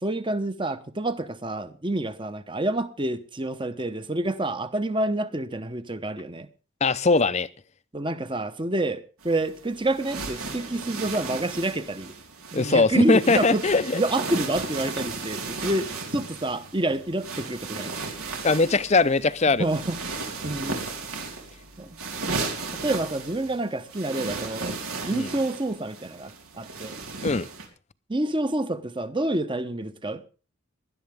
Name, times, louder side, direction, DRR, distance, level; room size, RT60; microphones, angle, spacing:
voice 1, 0.0-6.5 7.9-12.1 12.5-13.6 13.9-18.0 19.5-20.0 20.4-20.8 21.8-22.0 22.7-24.8 25.0-27.0 28.1-30.2, right 1 dB, 20° right, 0.9 m, -28 dB
voice 2, 6.8-7.5 12.5-14.0 18.4-19.7 25.1-25.3 27.2-27.5, left 3 dB, 30° left, 0.6 m, -21 dB
sound 1, 9.2-27.7, right 3 dB, 90° right, 4.0 m, -35 dB
19.5 x 11.5 x 3.6 m
head